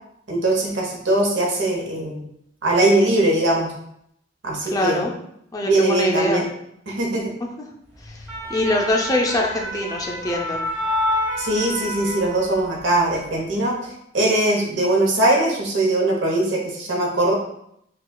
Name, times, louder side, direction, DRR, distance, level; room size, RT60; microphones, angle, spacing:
voice 1, 0.3-2.2 2.6-3.7 4.4-5.0 5.7-6.4 6.9-7.3 11.4-17.3, right 1 dB, 85° right, 0 dB, 0.9 m, -21 dB
voice 2, 4.7-5.1 5.5-6.4 8.0-8.2 8.5-10.6, left 1 dB, 20° left, 0 dB, 0.4 m, -23 dB
sound 1, 8.0-12.8 13.2-13.4, left 1 dB, 10° right, 1.0 m, -28 dB
4.9 x 2.3 x 2.3 m, 0.73 s
head